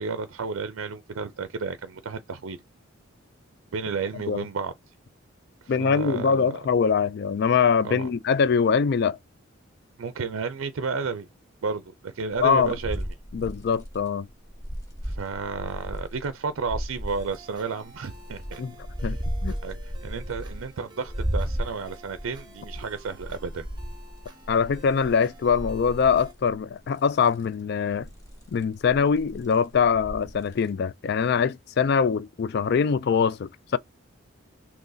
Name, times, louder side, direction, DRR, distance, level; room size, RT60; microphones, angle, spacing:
voice 1, 0.0-2.6 3.7-4.7 5.6-6.5 7.8-8.1 10.0-11.3 11.6-13.0 15.0-18.6 19.0-19.1 19.6-23.7, right 5 dB, 75° right, 0.5 m, -32 dB
voice 2, 5.7-9.2 12.4-12.8 13.3-14.3 18.6-18.7 19.0-19.5 24.5-28.1 28.5-33.8, left 6 dB, 50° left, 0.3 m, -23 dB
sound 1, 12.3-16.3 16.6-17.4 17.9-20.8 21.1-26.6 27.0-27.4 27.9-30.7, equal, 15° left, 1.3 m, -35 dB
sound 2, 17.1-26.3, right 1 dB, 20° right, 0.9 m, -51 dB
3.8 x 2.9 x 2.6 m
head